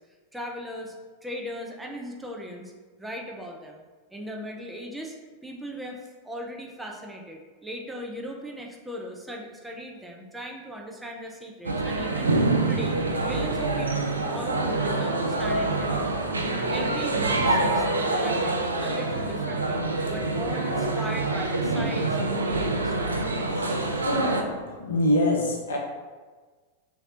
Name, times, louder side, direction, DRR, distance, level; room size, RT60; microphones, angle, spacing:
voice 1, 0.3-2.7 3.0-3.8 4.1-5.2 5.4-12.4 12.7-16.3 16.7-19.8 20.1-23.1, equal, 5° right, 0 dB, 0.5 m, -38 dB
sound 1, 11.6-24.4, right 2 dB, 75° right, 0.4 m, -26 dB
voice 2, 23.4-25.8, left 1 dB, 65° left, 0 dB, 0.7 m, -26 dB
3.2 x 2.7 x 3.7 m, 1.4 s
figure-of-eight pair, 90°, 0 cm